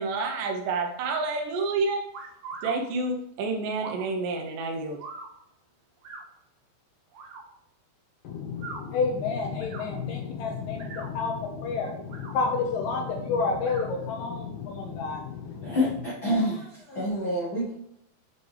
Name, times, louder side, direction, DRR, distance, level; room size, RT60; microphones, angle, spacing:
voice 1, 0.0-2.0 2.6-5.0, right 3 dB, 80° right, 3 dB, 1.9 m, -29 dB
sound 1, 2.1-2.8 3.7-4.1 5.0-5.3 6.0-6.2 7.1-7.4 8.5-8.8 9.6-9.9 10.7-11.1 12.0-12.3 13.6-13.9, right 4 dB, 60° right, 2.4 m, -41 dB
voice 2, 8.2-16.0, left 4 dB, 70° left, 1 dB, 2.2 m, -30 dB
voice 3, 15.6-17.7, left 1 dB, 50° left, -6 dB, 1.5 m, -27 dB
7.1 x 7.0 x 3.3 m, 0.75 s
omnidirectional pair, 4.9 m